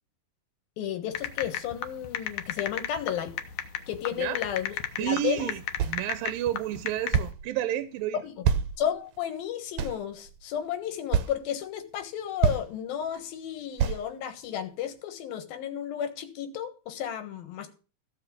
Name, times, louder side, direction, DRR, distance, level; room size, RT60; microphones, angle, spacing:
voice 1, 0.8-3.3 3.9-4.7 5.0-5.5 8.2-8.5 8.8-17.7, left 9 dB, 85° left, 3.2 m, -33 dB
sound 1, 1.1-7.3, left 10 dB, 65° left, 2.0 m, -34 dB
voice 2, 5.0-8.2, right 13 dB, 85° right, 2.5 m, -31 dB
sound 2, 5.8-6.0 7.1-7.5 8.4-9.2 9.8-10.4 11.1-11.3 12.0-12.1 12.4-12.7 13.8-14.0, right 8 dB, 70° right, 1.9 m, -26 dB
15.0 x 5.7 x 7.3 m
omnidirectional pair, 4.1 m